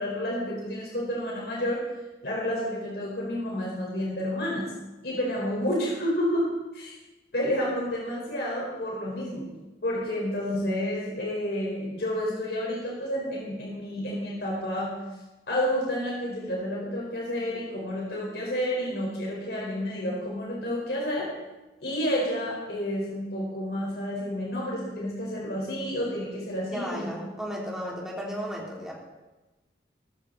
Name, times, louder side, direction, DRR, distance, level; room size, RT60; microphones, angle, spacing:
voice 1, 0.0-1.8 2.2-4.7 5.0-6.9 7.3-9.5 9.8-14.9 15.5-21.3 21.8-27.1, equal, 70° left, -3 dB, 4.7 m, -30 dB
voice 2, 26.7-28.9, equal, 5° right, -3 dB, 3.4 m, -34 dB
19.0 x 14.0 x 4.1 m, 1.1 s
head